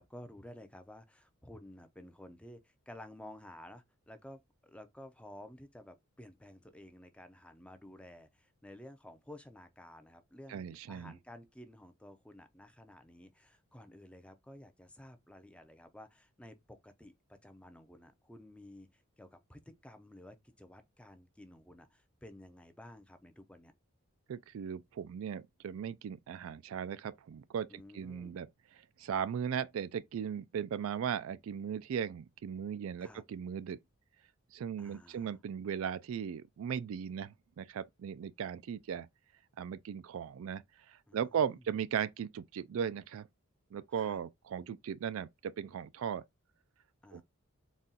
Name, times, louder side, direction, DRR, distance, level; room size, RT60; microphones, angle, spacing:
voice 1, 0.0-23.7 27.7-28.4 33.0-33.2 34.8-35.4 41.1-41.6 43.9-44.2 47.0-47.2, left 1 dB, 5° left, 0.5 m, -53 dB
voice 2, 10.5-11.1 24.3-28.5 29.0-33.8 34.5-39.1 39.6-40.6 40.9-43.3 43.7-46.2 47.1-47.2, right 8 dB, 70° right, 0.3 m, -37 dB
4.1 x 2.3 x 3.7 m
head